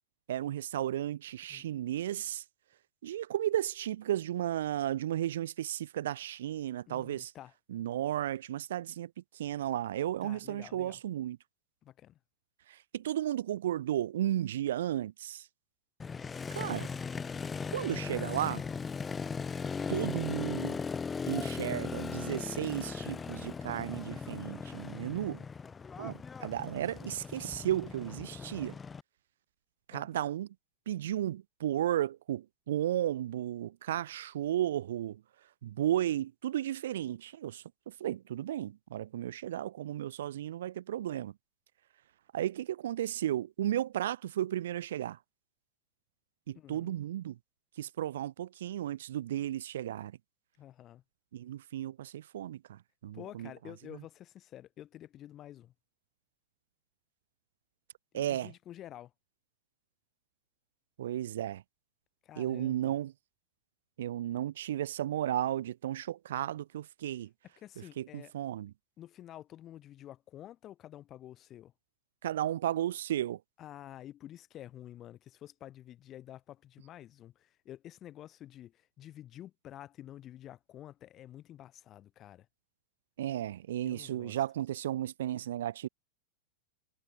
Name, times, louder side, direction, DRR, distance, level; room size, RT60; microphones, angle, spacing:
voice 1, 0.3-2.4 3.0-7.3 7.7-11.4 12.7-15.5 16.5-16.9 17.7-18.6 19.9-20.8 21.3-25.4 26.0-28.8 29.9-30.5 30.9-35.2 35.6-41.3 42.3-45.2 46.5-47.4 47.8-50.2 51.3-53.5 53.9-54.0 58.1-58.5 61.0-61.6 62.4-63.1 64.0-67.3 68.0-68.7 72.2-73.4 83.2-85.9, right 12 dB, 60° right, 1.1 m, -34 dB
voice 2, 6.9-7.5 10.2-11.0 11.8-12.2 29.9-30.2 46.6-46.9 50.6-51.0 53.1-55.7 58.1-59.1 62.2-62.9 67.6-68.3 69.0-71.7 73.6-82.5 83.8-84.4, left 12 dB, 30° left, 7.2 m, -50 dB
Motorcycle, 16.0-29.0, left 5 dB, 15° left, 1.0 m, -38 dB
figure-of-eight pair, 90°, 0 cm